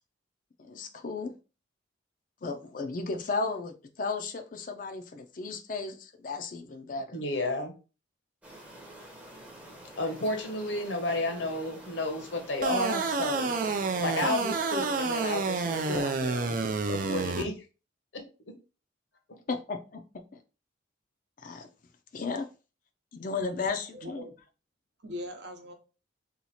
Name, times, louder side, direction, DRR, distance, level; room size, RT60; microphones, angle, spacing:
voice 1, 0.6-1.3 2.4-7.2 19.5-20.0 20.3-20.4 21.4-21.7 22.1-22.5 23.1-24.3, left 4 dB, 45° left, 0.4 m, -34 dB
voice 2, 7.1-7.7 10.0-16.6 16.9-17.5, left 2 dB, 70° left, 0.9 m, -32 dB
sound 1, 8.4-16.0, right 1 dB, 5° right, 0.7 m, -46 dB
sound 2, 12.6-17.4, right 4 dB, 45° right, 0.4 m, -29 dB
voice 3, 23.6-24.4 25.0-25.7, left 1 dB, 60° right, 0.8 m, -41 dB
2.9 x 2.4 x 4.2 m
head